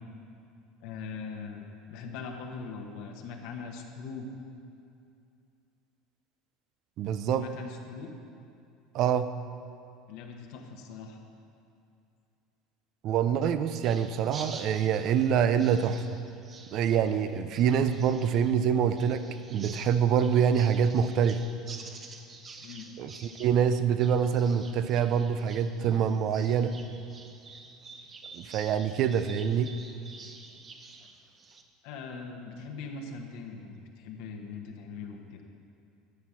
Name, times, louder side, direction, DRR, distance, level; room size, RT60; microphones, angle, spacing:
voice 1, 0.8-1.6 1.9-4.3 7.4-8.1 10.1-11.2 22.6-22.9 31.8-35.4, left 5 dB, 70° left, 2 dB, 1.1 m, -41 dB
voice 2, 7.0-7.5 8.9-9.3 13.0-16.0 16.7-21.4 23.0-26.8 28.3-29.7, right 8 dB, 55° right, 11 dB, 0.6 m, -25 dB
sound 1, 13.8-31.6, right 4 dB, 35° right, 0.9 m, -48 dB
12.0 x 6.3 x 5.9 m, 2.5 s
supercardioid pair, 95°, 0 cm